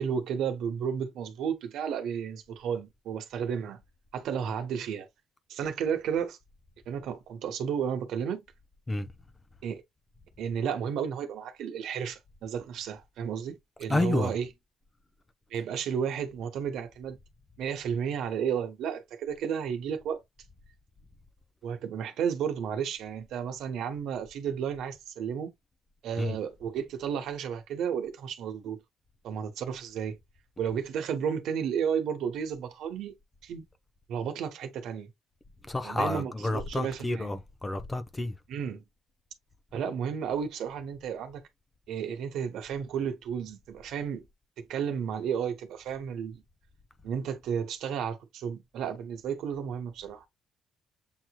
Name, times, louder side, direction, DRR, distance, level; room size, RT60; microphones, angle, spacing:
voice 1, 0.0-3.8 4.1-5.1 5.5-6.4 6.9-8.4 9.6-9.8 10.4-14.5 15.5-17.2 17.6-20.2 21.6-25.5 26.0-28.8 29.2-30.2 30.6-33.1 33.4-33.6 34.1-35.1 35.8-37.3 38.5-38.8 39.7-41.4 41.9-44.2 44.6-46.4 47.0-50.3, right 7 dB, 80° right, 1.0 m, -32 dB
voice 2, 13.9-14.3 26.2-26.4 35.7-38.3, left 2 dB, 20° left, 0.7 m, -30 dB
7.5 x 3.0 x 2.2 m
cardioid pair, 90°, 0 cm